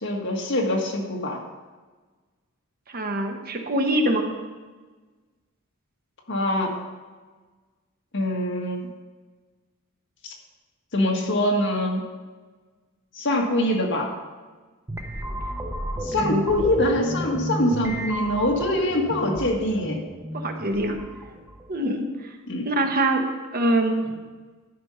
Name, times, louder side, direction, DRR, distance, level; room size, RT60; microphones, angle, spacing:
voice 1, 0.0-1.4 6.3-6.7 8.1-8.8 10.2-10.3 10.9-12.0 13.1-14.1 16.0-20.0 22.5-22.7, left 1 dB, 60° left, 1 dB, 1.6 m, -24 dB
voice 2, 2.9-4.3 16.2-16.5 20.3-21.0 21.7-22.1 22.6-23.2 23.5-24.2, right 1 dB, 45° right, 4 dB, 1.0 m, -24 dB
sound 1, 14.9-21.8, equal, 15° right, 0.8 m, -32 dB
12.5 x 5.3 x 5.5 m, 1.3 s
head